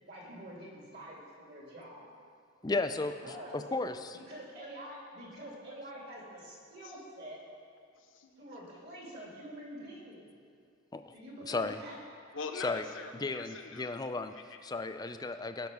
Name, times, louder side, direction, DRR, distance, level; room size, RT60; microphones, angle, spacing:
voice 1, 0.0-2.1 3.2-3.6 4.1-7.4 8.4-10.3 11.1-12.0, right 1 dB, 50° right, -4 dB, 3.0 m, -47 dB
voice 2, 2.6-4.2 10.9-11.1 11.4-11.8 12.6-12.8 13.2-14.3 14.6-15.7, left 3 dB, 20° left, 8 dB, 0.4 m, -34 dB
voice 3, 7.9-8.3 12.3-14.0 14.3-14.6, left 4 dB, 65° left, 4 dB, 1.0 m, -43 dB
16.5 x 6.0 x 5.4 m, 2.2 s
head